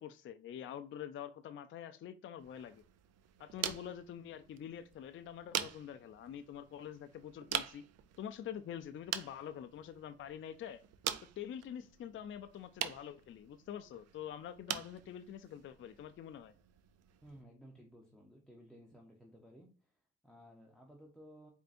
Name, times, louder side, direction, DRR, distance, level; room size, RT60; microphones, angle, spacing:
voice 1, 0.0-2.8 3.4-7.9 8.2-10.8 11.4-16.5, left 9 dB, 40° left, 0.4 m, -46 dB
sound 1, 2.4-17.4, right 10 dB, 60° right, 0.4 m, -45 dB
voice 2, 17.2-21.5, equal, ahead, 0.8 m, -57 dB
4.5 x 2.6 x 2.5 m
cardioid pair, 90°, 30 cm